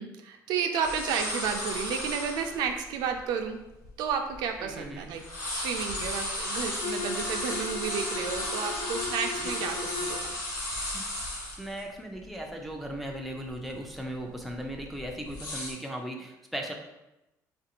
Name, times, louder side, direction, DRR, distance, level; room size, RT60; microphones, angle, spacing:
voice 1, 0.0-3.6 4.0-5.2 5.5-10.3, right 6 dB, 80° right, 5 dB, 0.4 m, -32 dB
sound 1, 0.8-2.6 3.1-3.2 3.8-4.8 5.1-11.8 12.2-12.3 12.7-13.1 13.5-13.7 14.4-15.7, left 1 dB, 85° left, 1.1 m, -34 dB
voice 2, 4.6-5.1 9.4-9.5 10.9-11.0 11.6-16.7, equal, ahead, 0 dB, 0.4 m, -37 dB
Bowed string instrument, 6.8-10.4, left 3 dB, 65° left, 0.4 m, -37 dB
3.9 x 2.5 x 2.8 m, 0.94 s
cardioid pair, 155°, 7 cm